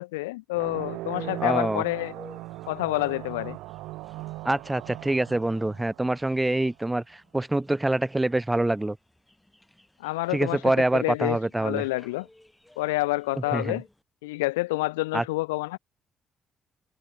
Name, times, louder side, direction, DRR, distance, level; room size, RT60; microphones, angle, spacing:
voice 1, 0.0-2.1 2.7-3.6 10.0-10.6 10.9-12.3 12.8-13.8 14.2-15.8, left 21 dB, 85° left, 0.4 m, -28 dB
sound 1, 0.5-6.7, right 19 dB, 75° right, 2.3 m, -39 dB
sound 2, 1.1-14.0, left 1 dB, 10° left, 2.6 m, -51 dB
voice 2, 1.4-1.8 4.4-9.0 10.3-11.8 13.5-13.8 15.1-15.2, right 2 dB, 15° right, 1.3 m, -25 dB
hypercardioid pair, 45°, 0 cm